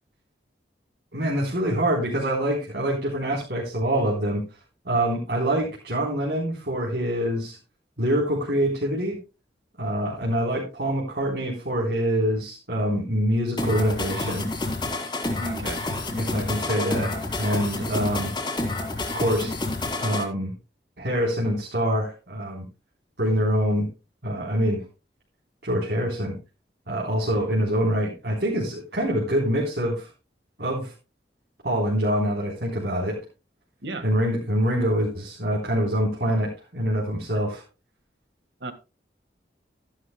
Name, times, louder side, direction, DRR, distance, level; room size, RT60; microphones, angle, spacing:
voice 1, 1.1-4.4 4.9-7.6 8.0-9.2 9.8-14.4 16.2-18.3 19.1-19.5 20.0-20.5 21.0-22.7 23.2-23.9 24.2-24.8 25.6-26.3 26.9-30.1 30.6-30.9 31.6-33.2 34.0-37.6, equal, 70° right, 3.8 m, -25 dB
sound 1, 13.6-20.2, left 2 dB, 25° left, 2.5 m, -29 dB
voice 2, 15.4-15.8 33.8-34.1 38.6-38.7, right 2 dB, 85° right, 1.6 m, -33 dB
14.0 x 11.5 x 2.2 m
head